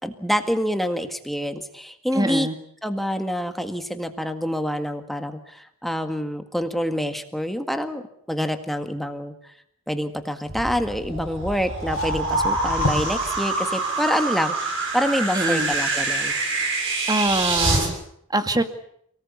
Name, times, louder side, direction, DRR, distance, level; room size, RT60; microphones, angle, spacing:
voice 1, 0.0-2.5 2.8-8.0 8.3-9.5 9.9-16.3, equal, ahead, 7 dB, 1.8 m, -27 dB
voice 2, 2.1-2.6 15.3-15.7 17.1-18.0 18.3-18.6, right 1 dB, 15° right, 8 dB, 2.1 m, -23 dB
sound 1, 10.5-17.9, right 2 dB, 60° right, 7.3 m, -25 dB
sound 2, 11.6-13.2 13.6-13.8 14.9-15.0, left 1 dB, 60° left, 3.6 m, -31 dB
29.5 x 18.5 x 8.4 m, 0.70 s
head